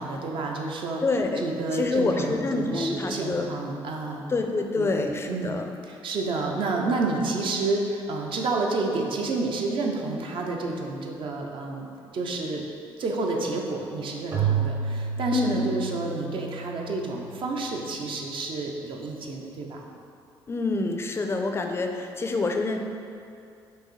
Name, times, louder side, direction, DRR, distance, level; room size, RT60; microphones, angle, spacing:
voice 1, 0.0-1.0 1.4-4.3 4.8-5.5 5.8-11.9 12.1-12.6 13.0-19.9, right 3 dB, 60° right, 0 dB, 0.5 m, -30 dB
voice 2, 1.0-1.4 1.7-3.5 4.3-5.7 15.3-15.6 20.5-22.8, left 3 dB, 25° left, 4 dB, 0.4 m, -26 dB
Keyboard (musical), 14.3-17.8, right 6 dB, 45° right, 0.9 m, -30 dB
4.6 x 2.7 x 3.1 m, 2.5 s
cardioid pair, 75°, 10 cm